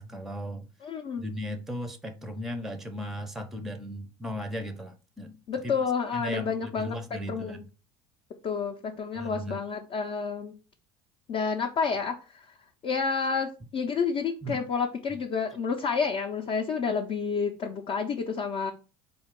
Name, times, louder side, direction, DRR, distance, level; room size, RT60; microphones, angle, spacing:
voice 1, 0.0-0.7 1.2-5.7 6.1-7.7 9.2-9.6 14.4-14.6 15.1-15.2, equal, 5° right, 0.5 m, -36 dB
voice 2, 0.8-1.3 5.5-6.9 7.3-7.6 8.4-10.5 11.3-12.5 12.8-18.7, left 5 dB, 45° left, 0.6 m, -29 dB
3.9 x 2.3 x 3.6 m
supercardioid pair, 100°, 13 cm